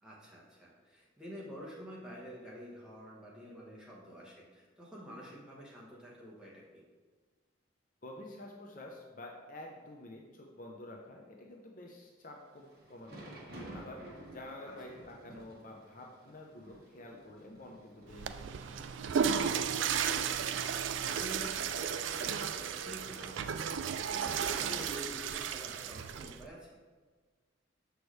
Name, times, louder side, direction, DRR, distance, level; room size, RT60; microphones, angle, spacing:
voice 1, 0.0-6.8 14.6-14.7 20.1-26.8, equal, 5° right, -5 dB, 1.3 m, -48 dB
voice 2, 8.0-13.5 13.7-14.0 14.3-18.9, left 1 dB, 40° left, 0 dB, 0.7 m, -49 dB
Thunder / Rain, 12.3-25.4, right 1 dB, 50° right, 1.4 m, -55 dB
Water / Toilet flush, 18.1-26.5, right 7 dB, 70° right, 0.3 m, -34 dB
6.7 x 6.2 x 3.2 m, 1.4 s
head